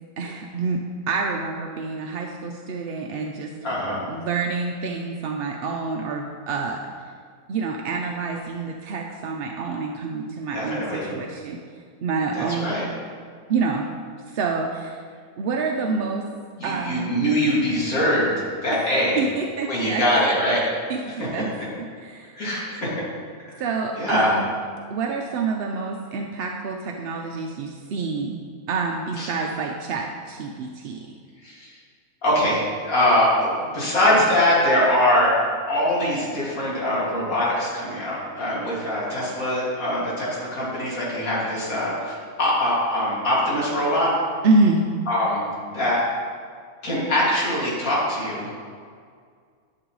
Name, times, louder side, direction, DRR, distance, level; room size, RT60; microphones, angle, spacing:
voice 1, 0.2-3.6 4.1-6.8 7.5-11.6 12.0-12.7 13.5-13.9 14.3-15.0 15.4-16.2 16.6-17.1 18.7-18.8 19.2-20.0 20.9-21.5 22.0-22.3 23.6-24.5 24.9-28.4 28.7-31.0 44.4-44.8, right 4 dB, 60° right, 1 dB, 0.6 m, -27 dB
voice 2, 3.6-4.0 10.5-11.1 12.3-12.8 16.6-18.3 18.6-19.2 19.7-20.6 21.2-21.3 22.4-22.9 23.9-24.4 29.2-29.3 31.4-31.7 32.2-32.6 32.8-35.4 35.7-44.1 45.1-45.4 45.7-46.0 46.8-48.5, left 1 dB, 75° left, -7 dB, 2.7 m, -22 dB
11.5 x 6.7 x 3.1 m, 2.1 s
omnidirectional pair, 1.5 m